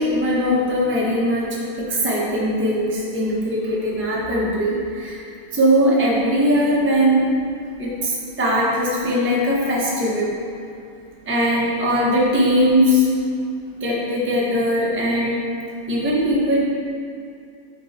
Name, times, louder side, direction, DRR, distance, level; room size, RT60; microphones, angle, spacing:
voice 1, 0.0-5.2 5.5-7.3 7.8-10.4 11.3-13.1 13.8-15.4 15.9-16.6, equal, 15° right, -5 dB, 0.4 m, -20 dB
8.6 x 3.8 x 4.2 m, 2.5 s
omnidirectional pair, 2.3 m